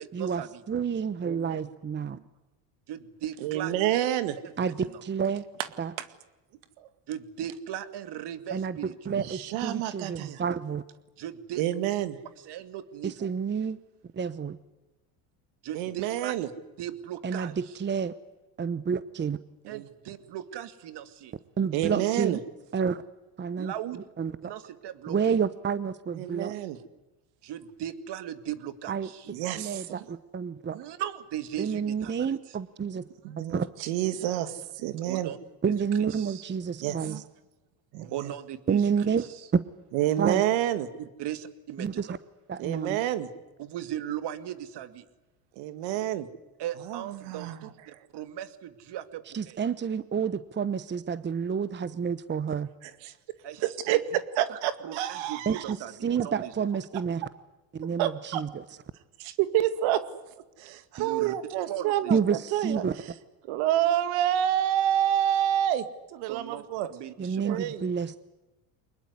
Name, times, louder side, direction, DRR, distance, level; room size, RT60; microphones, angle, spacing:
voice 1, 0.0-0.6 2.0-2.3 2.9-3.7 4.8-5.0 7.1-9.2 11.2-11.6 12.4-13.3 15.6-16.3 16.8-17.8 19.7-21.4 23.6-24.0 24.4-25.4 27.4-29.3 30.7-32.6 35.0-35.4 35.7-36.4 38.1-38.8 39.2-39.5 41.0-42.2 43.6-45.1 46.6-49.6 53.4-54.0 54.5-56.5 61.0-61.3 61.7-62.1 66.3-67.6, right 11 dB, 55° right, 11 dB, 2.4 m, -38 dB
voice 2, 0.7-2.2 4.6-5.5 5.8-5.9 8.5-8.8 9.0-10.8 13.0-13.8 14.1-14.6 17.2-17.5 17.8-18.2 18.6-19.4 21.6-22.4 22.7-23.0 23.4-23.7 24.2-24.5 25.1-26.6 28.9-29.1 29.6-30.8 31.6-33.1 33.4-33.7 35.6-37.2 38.7-39.3 40.2-40.4 41.8-42.2 42.5-43.0 49.3-52.7 55.5-55.8 56.0-57.2 57.7-58.6 62.1-62.9 67.2-68.2, right 6 dB, 20° right, 15 dB, 1.0 m, -29 dB
voice 3, 1.2-1.7 3.4-4.4 6.8-6.9 9.1-10.4 11.6-12.2 15.7-16.5 19.6-19.8 21.7-22.4 26.1-26.8 29.3-30.0 33.2-35.3 36.8-37.2 37.9-38.3 39.9-40.9 42.6-43.3 45.6-46.3 46.9-48.0 53.0-53.1 53.6-55.6 58.0-58.4 59.2-60.0 60.6-62.9 63.5-65.9 66.1-66.9 67.4-67.9, right 12 dB, 70° right, 11 dB, 2.2 m, -28 dB
24.0 x 21.0 x 9.6 m, 1.0 s
supercardioid pair, 100°, 48 cm